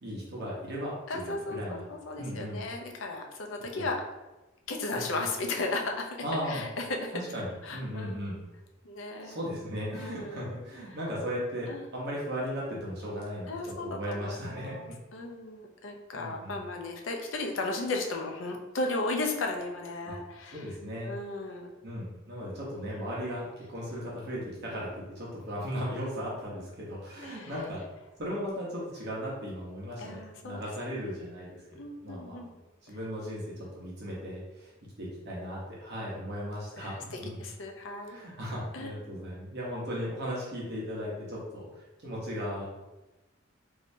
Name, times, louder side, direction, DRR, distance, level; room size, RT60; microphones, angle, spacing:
voice 1, 0.0-1.8 2.2-2.6 3.7-3.9 4.9-5.2 6.2-6.6 7.1-8.4 9.2-15.0 16.1-16.6 20.0-20.1 20.5-21.2 21.8-27.8 28.2-31.6 32.0-32.4 32.8-34.7 35.0-37.4 38.0-42.7, equal, 55° right, -5 dB, 0.9 m, -37 dB
voice 2, 1.1-4.0 4.7-7.1 7.6-8.4 8.8-9.4 9.9-10.5 11.7-11.9 13.5-20.7 21.1-21.7 22.9-23.1 27.2-27.5 30.0-30.6 31.7-32.5 36.7-38.2 38.7-38.9, left 2 dB, 70° left, 2 dB, 0.5 m, -35 dB
3.2 x 2.7 x 2.6 m, 1.1 s
head